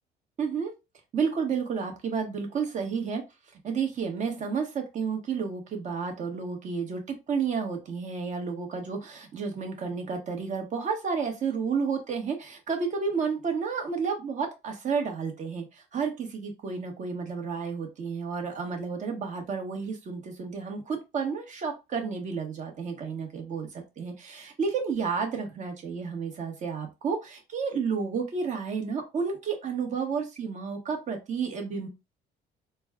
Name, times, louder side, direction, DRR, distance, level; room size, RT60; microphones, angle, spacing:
voice 1, 0.4-0.7 1.1-3.2 3.6-7.0 7.3-31.9, right 5 dB, 45° right, 2 dB, 1.3 m, -31 dB
4.0 x 2.3 x 3.6 m, 0.25 s
cardioid pair, 110°, 17 cm